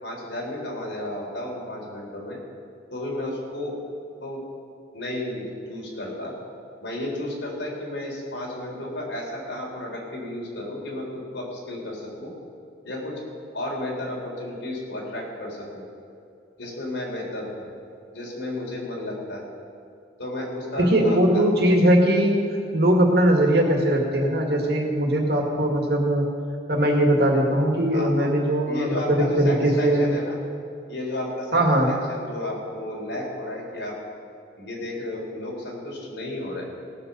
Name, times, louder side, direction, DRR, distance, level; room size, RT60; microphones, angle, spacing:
voice 1, 0.0-2.4 2.9-3.8 4.2-4.4 4.9-6.3 6.8-12.3 12.8-13.2 13.5-15.8 16.6-17.7 18.1-19.4 20.2-21.4 27.9-28.3 28.7-30.4 30.9-34.0 34.6-36.7, left 1 dB, 85° left, -2 dB, 3.8 m, -32 dB
voice 2, 20.8-22.4 22.7-26.2 26.7-30.1 31.5-31.9, right 1 dB, 60° right, 1 dB, 2.2 m, -20 dB
18.5 x 6.8 x 6.9 m, 2.5 s
head